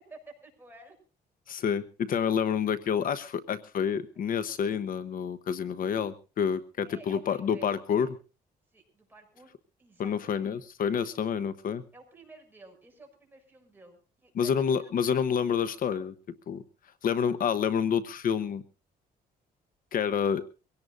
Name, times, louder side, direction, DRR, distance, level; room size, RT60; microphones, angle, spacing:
voice 1, 0.1-0.9 6.8-8.1 8.7-9.5 9.8-10.6 11.1-11.3 11.9-15.2, right 3 dB, 10° right, 1 dB, 6.4 m, -53 dB
voice 2, 1.5-8.1 10.0-11.8 14.4-16.1 16.5-16.6 17.0-18.6 19.9-20.4, left 7 dB, 60° left, 13 dB, 1.0 m, -28 dB
24.0 x 17.5 x 2.5 m, 0.35 s
cardioid pair, 120°, 17 cm